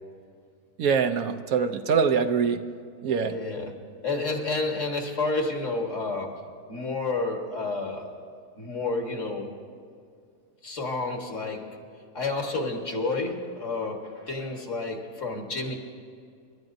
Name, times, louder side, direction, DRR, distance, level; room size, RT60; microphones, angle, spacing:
voice 1, 0.8-2.6 3.0-3.3, right 6 dB, 75° right, 8 dB, 1.1 m, -24 dB
voice 2, 3.2-3.8 4.0-8.1 8.6-9.5 10.6-11.8 12.1-15.7, left 3 dB, 55° left, 2 dB, 1.9 m, -30 dB
27.0 x 12.5 x 2.6 m, 2.3 s
omnidirectional pair, 1.6 m